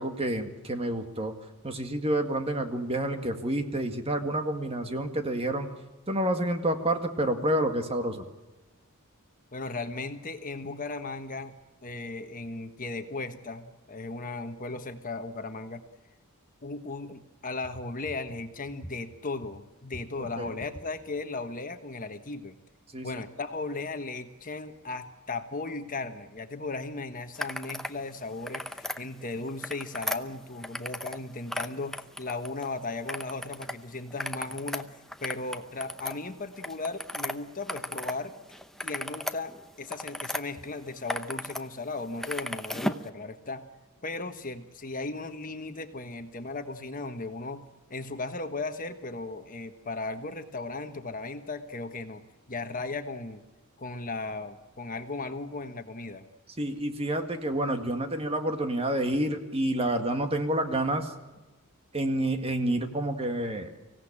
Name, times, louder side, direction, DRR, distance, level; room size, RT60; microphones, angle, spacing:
voice 1, 0.0-1.3 1.6-5.7 6.1-8.2 20.2-20.5 22.9-23.2 56.6-61.1 61.9-63.7, right 1 dB, 25° right, 6 dB, 1.9 m, -29 dB
voice 2, 9.5-11.6 11.8-15.8 16.6-22.6 23.0-38.3 38.8-39.5 39.8-43.6 44.0-52.2 52.5-53.4 53.8-56.3, left 3 dB, 40° left, 8 dB, 1.4 m, -36 dB
sound 1, 27.4-28.0 28.3-29.0 29.5-31.2 31.5-32.7 33.1-33.7 34.1-38.2 38.5-40.4 40.9-41.6 41.9-43.1, left 1 dB, ahead, 0.8 m, -35 dB
25.0 x 17.0 x 8.8 m, 1.1 s
head